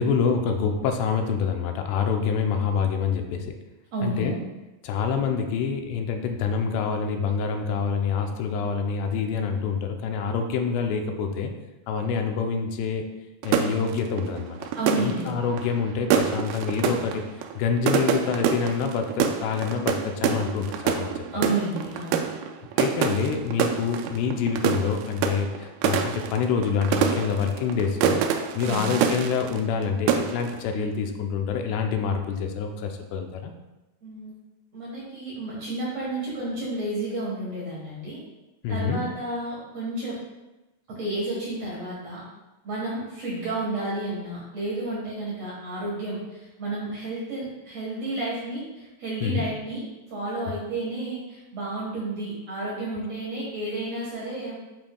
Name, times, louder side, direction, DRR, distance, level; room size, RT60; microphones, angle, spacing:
voice 1, 0.0-3.5 4.0-4.4 4.8-11.5 11.9-13.1 13.4-14.6 15.0-17.2 17.6-21.4 22.8-28.2 28.6-33.5 38.6-39.0 49.2-49.5, left 6 dB, 85° left, 5 dB, 2.7 m, -26 dB
voice 2, 3.9-4.3 14.8-15.3 21.3-22.3 28.6-29.0 34.0-34.3 34.7-38.2 38.7-40.2 40.9-42.2 42.6-49.8 50.1-54.5, right 2 dB, 60° right, -7 dB, 1.8 m, -31 dB
sound 1, 13.4-29.8 30.1-30.6, right 7 dB, 90° right, 2.1 m, -26 dB
10.5 x 4.4 x 2.2 m, 1.0 s
omnidirectional pair, 4.8 m